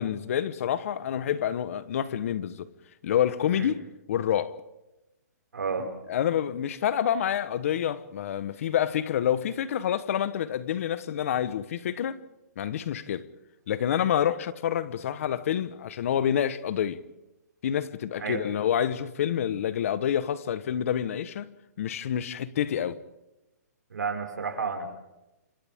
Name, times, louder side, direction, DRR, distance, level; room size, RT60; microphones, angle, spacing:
voice 1, 0.0-2.7 3.0-3.8 4.1-4.6 5.8-12.2 12.6-13.3 13.7-17.0 17.6-21.5 21.8-23.0, left 9 dB, 50° left, 1.3 m, -28 dB
voice 2, 5.5-5.9 18.2-18.5 23.9-24.9, right 5 dB, 90° right, 5.7 m, -31 dB
30.0 x 26.5 x 3.7 m
hypercardioid pair, 155°, 9 cm